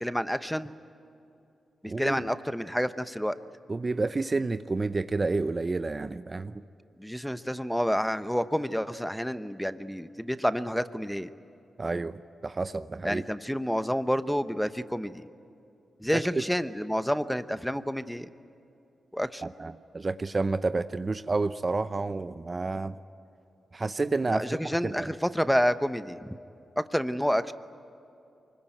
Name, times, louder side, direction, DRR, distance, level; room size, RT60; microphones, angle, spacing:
voice 1, 0.0-0.7 1.8-3.3 7.0-11.3 13.0-15.2 16.0-18.3 19.1-19.4 24.3-26.4 26.8-27.5, equal, ahead, 12 dB, 0.9 m, -29 dB
voice 2, 1.8-2.2 3.7-6.6 11.8-13.2 16.1-16.2 19.4-23.0 23.7-25.1, right 3 dB, 35° right, 12 dB, 0.6 m, -30 dB
24.5 x 21.5 x 9.1 m, 2.7 s
cardioid pair, 75°, 0 cm